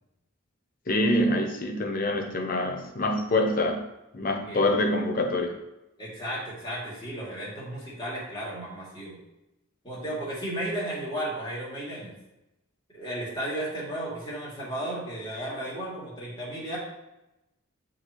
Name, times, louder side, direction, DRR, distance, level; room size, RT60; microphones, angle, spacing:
voice 1, 0.9-3.8 4.1-5.6, left 1 dB, 40° left, 4 dB, 0.8 m, -25 dB
voice 2, 6.0-9.2 9.8-12.1 12.9-16.8, right 1 dB, 20° left, -7 dB, 2.6 m, -34 dB
10.5 x 4.0 x 3.1 m, 0.92 s
head